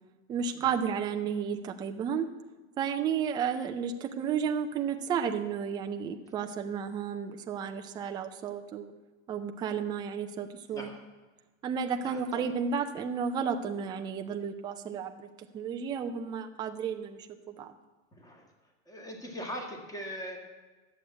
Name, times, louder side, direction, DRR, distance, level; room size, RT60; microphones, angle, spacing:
voice 1, 0.3-2.3 2.8-8.9 9.3-10.9 11.6-15.3 15.5-17.7, right 7 dB, 10° right, 5 dB, 0.4 m, -32 dB
voice 2, 12.0-12.5 18.1-18.5 18.9-20.4, equal, 10° left, 2 dB, 2.1 m, -41 dB
11.5 x 7.9 x 8.5 m, 1.2 s
hypercardioid pair, 140°, 41 cm